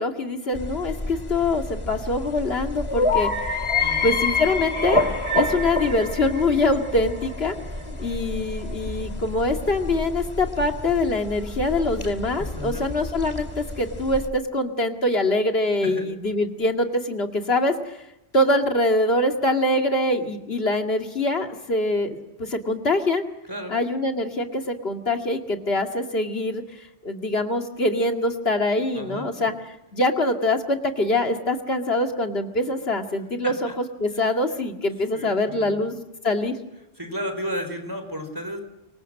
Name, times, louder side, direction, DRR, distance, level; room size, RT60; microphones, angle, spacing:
voice 1, 0.0-3.6 4.0-5.0 5.3-7.6 8.0-18.0 18.3-23.2 23.7-26.6 27.0-29.5 29.9-33.5 34.0-36.6, left 2 dB, 70° left, 4 dB, 2.5 m, -24 dB
sound 1, 0.5-14.3, left 3 dB, 25° left, 2.4 m, -28 dB
voice 2, 3.8-4.1 12.5-12.8 15.8-16.0 23.5-23.8 28.9-29.5 33.4-33.7 34.1-34.3 35.1-35.8 37.0-38.6, equal, 20° right, 5 dB, 4.3 m, -33 dB
26.0 x 24.5 x 6.6 m, 0.85 s
omnidirectional pair, 1.1 m